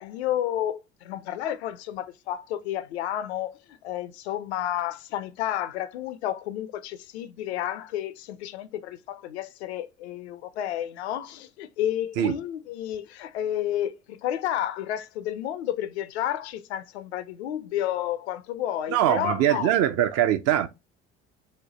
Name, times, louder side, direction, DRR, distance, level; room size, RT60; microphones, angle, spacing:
voice 1, 0.0-19.7, left 11 dB, 75° left, 0.5 m, -31 dB
voice 2, 18.9-20.7, right 11 dB, 50° right, 0.5 m, -22 dB
3.1 x 2.2 x 3.8 m
hypercardioid pair, 60°, 33 cm